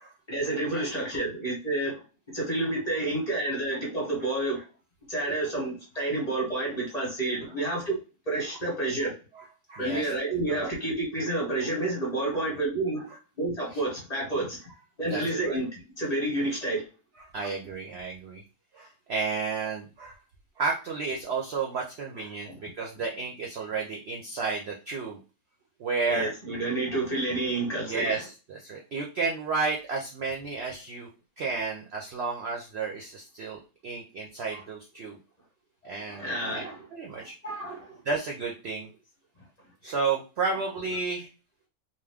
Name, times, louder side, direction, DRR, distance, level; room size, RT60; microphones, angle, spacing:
voice 1, 0.3-2.0 2.3-4.6 5.1-8.0 8.3-9.1 9.8-13.1 13.4-14.6 15.0-16.8 17.4-17.5 26.1-28.2 34.5-34.6 35.8-38.0, right 2 dB, 30° left, -3 dB, 0.9 m, -30 dB
voice 2, 9.7-10.1 10.5-10.7 12.3-12.4 15.0-15.6 17.3-18.4 18.7-20.2 20.6-25.2 25.8-26.3 27.9-31.1 31.4-35.2 35.8-37.3 38.1-38.9 39.8-41.3, right 4 dB, 65° right, 0 dB, 0.6 m, -32 dB
2.9 x 2.0 x 3.4 m, 0.32 s
omnidirectional pair, 1.6 m